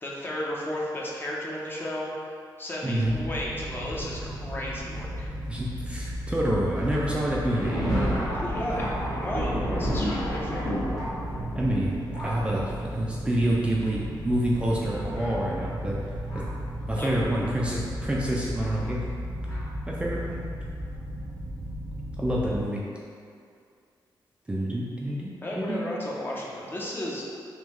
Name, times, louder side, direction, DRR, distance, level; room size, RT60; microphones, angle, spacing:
voice 1, 0.0-2.1 2.6-5.3 8.3-10.7 16.9-17.1 25.4-27.3, left 1 dB, 25° left, -4 dB, 0.6 m, -34 dB
voice 2, 2.8-3.1 5.5-8.0 9.9-10.0 11.5-11.9 12.2-12.6 12.9-16.0 16.3-16.4 16.9-19.0 19.9-20.4 22.2-22.8 24.5-25.8, right 1 dB, 15° right, -5 dB, 0.4 m, -27 dB
sound 1, 3.0-22.6, equal, 80° right, 0.4 m, -35 dB
Thunder, 6.7-16.7 17.4-17.5 18.5-18.7 19.5-19.6, equal, 45° left, 0.9 m, -33 dB
3.6 x 3.0 x 3.1 m, 2.3 s
wide cardioid pair, 120°, 8 cm